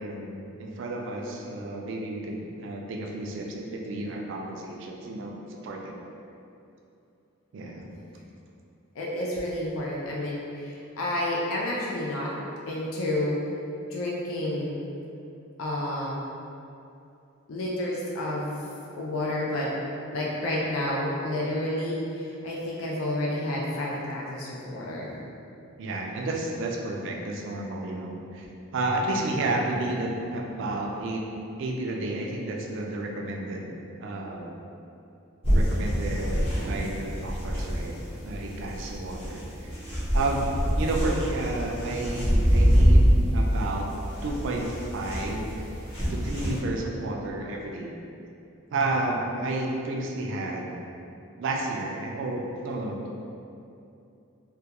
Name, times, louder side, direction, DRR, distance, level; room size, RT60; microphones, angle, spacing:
voice 1, 0.0-5.9 7.5-8.0 25.8-28.5 28.7-31.2 31.6-33.7 34.0-34.6 35.5-38.0 38.2-39.7 40.1-40.5 40.8-43.1 43.3-43.9 44.2-45.5 46.1-47.9 48.7-50.8 51.4-53.1, right 2 dB, 60° right, -1 dB, 0.3 m, -31 dB
voice 2, 9.0-12.3 12.7-13.4 13.9-14.8 15.6-16.2 17.5-18.6 18.9-19.7 20.1-25.1, left 1 dB, 70° left, -4 dB, 0.4 m, -30 dB
sound 1, 35.4-46.6, equal, 25° left, 0.8 m, -25 dB
2.3 x 2.2 x 2.8 m, 2.7 s
head